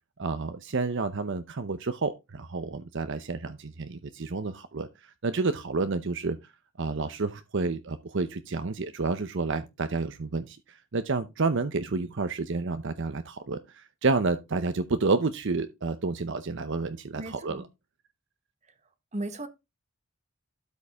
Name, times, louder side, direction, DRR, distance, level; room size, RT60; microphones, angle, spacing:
voice 1, 0.2-6.4 6.8-17.6, right 3 dB, 60° right, 0.7 m, -30 dB
voice 2, 17.1-17.7 19.1-19.5, right 2 dB, 35° right, 1.3 m, -35 dB
12.5 x 5.3 x 3.5 m
head